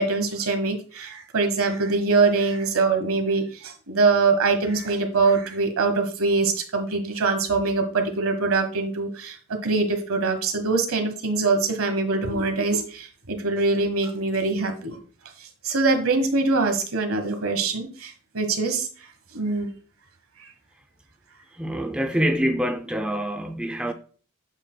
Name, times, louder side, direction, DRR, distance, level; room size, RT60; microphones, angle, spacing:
voice 1, 0.0-15.0 15.4-18.9 19.3-19.7 20.4-20.5, right 3 dB, 80° right, 1.2 m, -23 dB
voice 2, 21.6-23.9, equal, 5° right, 0.4 m, -25 dB
7.9 x 5.6 x 2.2 m
head